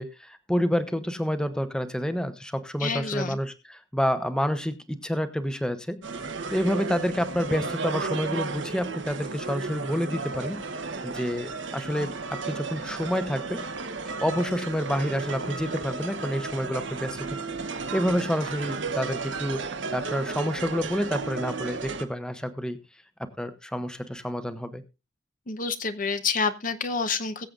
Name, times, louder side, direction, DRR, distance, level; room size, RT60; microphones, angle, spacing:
voice 1, 0.0-6.0 6.5-10.6 11.0-13.6 14.1-17.4 17.7-22.8 23.2-24.8, equal, 5° left, 10 dB, 0.9 m, -29 dB
voice 2, 2.8-3.4 25.5-27.5, left 5 dB, 45° left, 9 dB, 0.9 m, -28 dB
sound 1, 6.0-22.0, right 4 dB, 80° right, 1.2 m, -34 dB
22.0 x 7.6 x 2.5 m, 0.27 s
head